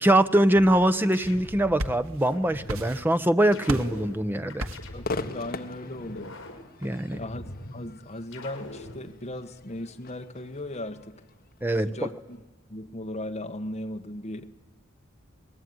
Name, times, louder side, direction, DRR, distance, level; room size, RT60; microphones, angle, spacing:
voice 1, 0.0-4.7 6.8-7.2 11.6-12.1, right 1 dB, 10° right, 10 dB, 0.8 m, -23 dB
sound 1, 0.5-1.8 2.3-3.0 3.5-5.4 5.9-7.8 8.3-9.0, left 1 dB, 65° left, 4.9 m, -42 dB
sound 2, 1.4-2.3 2.7-3.3 3.7-4.0 4.6-5.0, right 1 dB, 85° right, 1.5 m, -34 dB
voice 2, 4.9-6.3 7.2-7.4 7.7-11.1 11.8-12.4 12.7-14.6, left 1 dB, 30° left, 5 dB, 1.7 m, -37 dB
Crowd / Fireworks, 5.0-12.4, left 3 dB, 45° left, 1.5 m, -41 dB
28.5 x 20.5 x 9.7 m, 1.2 s
head